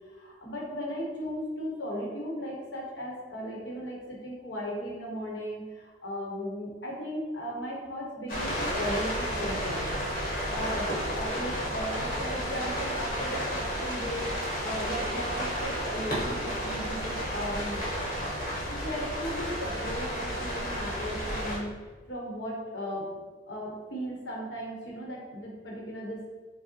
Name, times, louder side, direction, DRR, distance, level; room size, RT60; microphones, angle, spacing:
voice 1, 0.1-9.9 10.2-17.8 18.7-21.7 22.1-23.1 23.5-26.4, equal, 75° left, -3 dB, 1.0 m, -36 dB
sound 1, 8.3-21.6, equal, 50° left, 1.0 m, -32 dB
4.7 x 2.1 x 3.0 m, 1.4 s
head